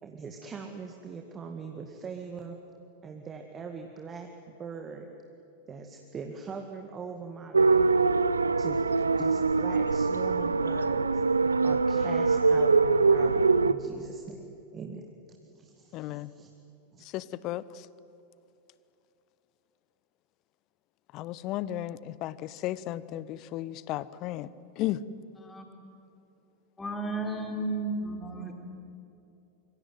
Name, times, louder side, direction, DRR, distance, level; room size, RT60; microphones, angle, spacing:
voice 1, 0.0-2.6 3.0-5.1 5.7-8.0 8.6-8.9 9.2-11.1 11.6-16.5 16.9-17.0, right 5 dB, 25° right, 4 dB, 2.1 m, -41 dB
sound 1, 7.5-13.7, right 4 dB, 75° right, 0.7 m, -23 dB
voice 2, 15.9-16.3 17.1-17.9 21.1-24.5 24.8-25.0, left 14 dB, 40° left, 18 dB, 0.9 m, -34 dB
voice 3, 26.8-28.5, right 2 dB, 10° left, 2 dB, 4.8 m, -33 dB
26.0 x 24.0 x 9.4 m, 2.7 s
figure-of-eight pair, 90°, 0 cm